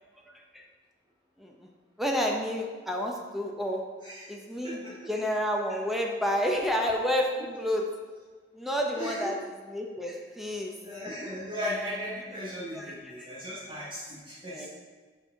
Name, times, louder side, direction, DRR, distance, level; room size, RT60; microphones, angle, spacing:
voice 1, 1.4-1.7 2.0-3.8 4.3-4.8 5.1-7.9 8.5-9.4 9.7-10.7 12.7-13.3 14.5-14.7, equal, ahead, 0 dB, 0.7 m, -30 dB
voice 2, 4.0-4.3 4.6-5.1 7.4-7.6 8.9-9.3 10.8-14.7, equal, 25° right, -7 dB, 1.3 m, -37 dB
6.0 x 5.5 x 5.1 m, 1.4 s
head